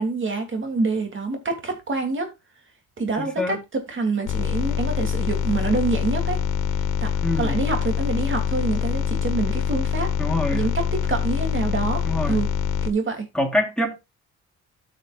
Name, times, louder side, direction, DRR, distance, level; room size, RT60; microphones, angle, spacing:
voice 1, 0.0-2.3 3.0-6.4 7.0-7.1 7.4-10.1 10.5-12.5 12.8-13.3, right 3 dB, 40° right, 2.9 m, -26 dB
voice 2, 3.2-3.6 7.2-7.6 10.2-10.7 12.0-12.4 13.3-14.0, left 1 dB, 5° left, 3.4 m, -25 dB
sound 1, 4.2-12.9, left 7 dB, 80° left, 1.3 m, -25 dB
13.0 x 6.6 x 2.5 m
cardioid pair, 90°, 30 cm